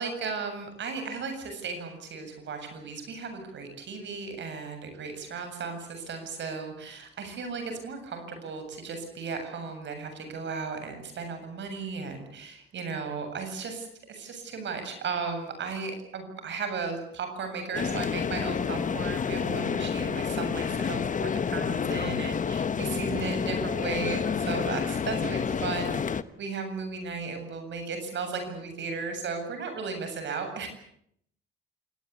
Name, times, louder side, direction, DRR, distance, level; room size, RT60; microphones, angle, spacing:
voice 1, 0.0-30.7, right 4 dB, 65° right, 6 dB, 7.6 m, -35 dB
sound 1, 17.7-26.2, left 6 dB, 40° left, 1.1 m, -29 dB
28.5 x 18.5 x 8.3 m, 0.70 s
cardioid pair, 90°, 20 cm